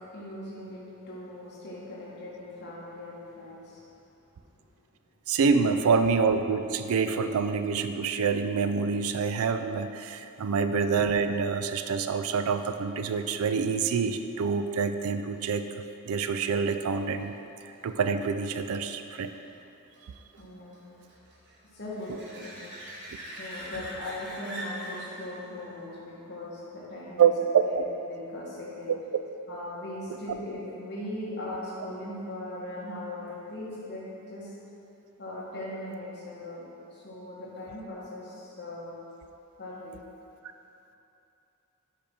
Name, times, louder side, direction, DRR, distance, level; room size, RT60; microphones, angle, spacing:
voice 1, 0.0-3.8 4.4-4.5 5.5-5.7 20.4-20.9 21.7-22.6 23.2-28.9 29.5-34.5 35.2-39.0 39.6-40.0, left 1 dB, 50° left, -6 dB, 1.4 m, -39 dB
voice 2, 5.3-15.7 16.0-17.3 17.8-19.3 27.2-27.8 29.1-29.2, right 5 dB, 70° right, 8 dB, 0.3 m, -26 dB
sound 1, 16.4-27.6 33.3-33.4, right 1 dB, 50° right, 1.3 m, -45 dB
5.4 x 5.1 x 4.3 m, 2.8 s
head